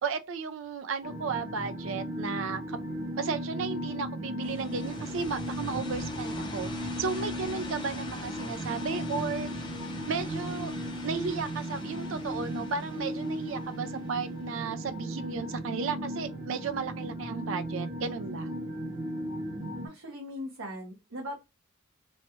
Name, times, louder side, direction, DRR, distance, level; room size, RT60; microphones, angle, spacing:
voice 1, 0.0-2.8 3.2-6.7 7.0-9.7 10.1-10.7 11.0-18.5, right 5 dB, 65° right, 0.4 m, -34 dB
sound 1, 1.0-19.9, equal, 25° right, 0.7 m, -36 dB
sound 2, 4.4-15.1, left 2 dB, 20° left, 0.6 m, -44 dB
voice 2, 19.8-21.3, left 1 dB, 80° right, 0.9 m, -39 dB
3.1 x 2.1 x 2.9 m
head